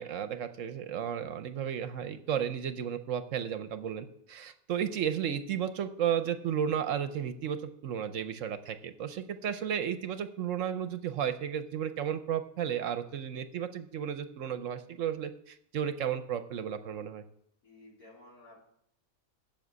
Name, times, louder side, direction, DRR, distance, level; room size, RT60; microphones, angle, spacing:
voice 1, 0.0-17.2, right 9 dB, 65° right, 10 dB, 1.0 m, -33 dB
voice 2, 17.6-18.6, left 2 dB, 85° left, -5 dB, 4.0 m, -54 dB
7.5 x 7.4 x 8.0 m, 0.72 s
omnidirectional pair, 1.6 m